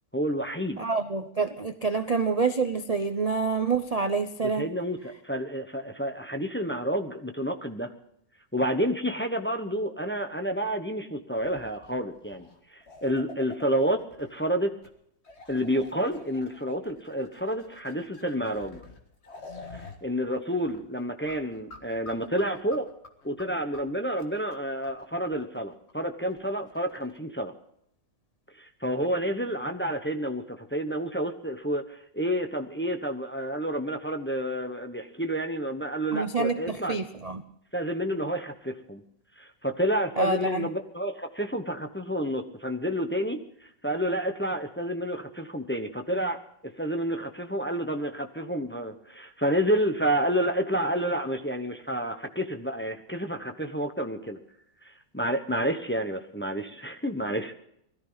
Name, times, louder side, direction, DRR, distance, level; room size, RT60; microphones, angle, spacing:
voice 1, 0.1-0.8 4.4-5.0 5.2-7.9 8.5-14.7 15.5-18.8 19.7-22.9 23.2-27.5 28.6-37.0 37.7-39.0 39.4-43.4 43.8-46.4 46.8-54.4 54.8-57.5, equal, 10° left, 5 dB, 0.7 m, -29 dB
voice 2, 0.8-4.7 36.1-37.4 40.2-40.7, right 4 dB, 70° right, 8 dB, 0.3 m, -27 dB
sound 1, 11.4-14.5 14.8-14.9 15.2-20.0 20.3-20.4 20.7-27.2, left 3 dB, 40° left, 1.8 m, -48 dB
20.5 x 14.0 x 4.0 m, 0.73 s
omnidirectional pair, 1.9 m